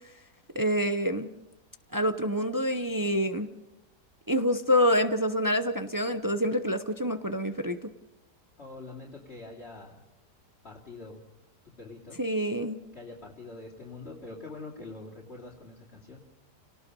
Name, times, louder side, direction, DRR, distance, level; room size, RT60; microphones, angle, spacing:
voice 1, 0.5-1.3 1.9-3.5 4.3-7.9 12.2-12.8, equal, 25° right, 8 dB, 0.4 m, -27 dB
voice 2, 8.6-10.0 10.6-11.2 11.8-12.2 12.9-16.2, left 3 dB, 40° left, -4 dB, 2.9 m, -44 dB
29.5 x 19.0 x 5.5 m, 0.91 s
omnidirectional pair, 1.8 m